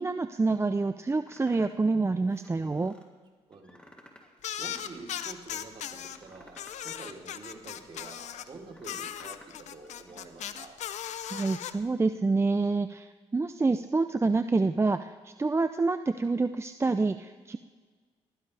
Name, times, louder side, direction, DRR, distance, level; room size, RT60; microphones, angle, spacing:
voice 1, 0.0-2.9 11.3-17.6, right 3 dB, 20° right, 9 dB, 0.6 m, -27 dB
sound 1, 1.3-1.9 2.3-3.0 3.5-4.4 4.7-5.6 6.0-8.2 8.5-9.5 9.8-10.5, left 1 dB, 10° left, 2.8 m, -56 dB
voice 2, 3.5-3.9 4.6-10.8, right 3 dB, 45° right, 0 dB, 3.6 m, -47 dB
sound 2, 4.4-6.2 6.5-8.5 8.8-11.7, left 10 dB, 75° left, 0.7 m, -37 dB
21.0 x 15.5 x 3.4 m, 1.5 s
cardioid pair, 70°, 12 cm